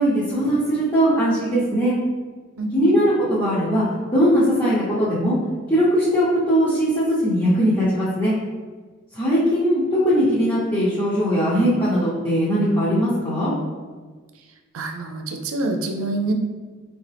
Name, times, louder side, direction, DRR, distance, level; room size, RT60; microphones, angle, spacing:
voice 1, 0.0-1.9 2.7-3.8 4.1-5.4 5.7-8.4 9.1-13.5, equal, 20° left, -12 dB, 0.9 m, -20 dB
voice 2, 2.6-3.0 14.7-16.3, right 2 dB, 90° right, 5 dB, 0.5 m, -26 dB
3.7 x 3.4 x 3.4 m, 1.4 s
head